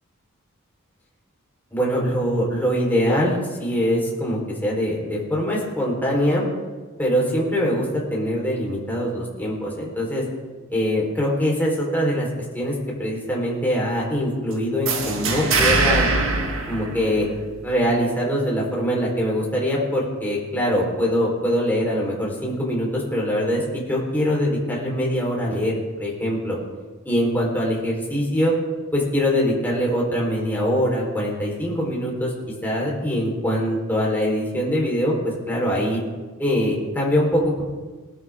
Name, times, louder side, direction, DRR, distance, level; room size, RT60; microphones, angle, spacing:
voice 1, 1.7-6.4 7.0-10.2 10.7-12.3 12.5-16.1 16.7-17.3 17.6-26.6 27.0-28.5 28.9-32.3 32.6-36.0 36.4-37.6, equal, 10° left, -4 dB, 4.3 m, -23 dB
sound 1, 14.8-17.6, right 3 dB, 65° right, 1.9 m, -22 dB
20.0 x 13.0 x 3.7 m, 1.3 s
head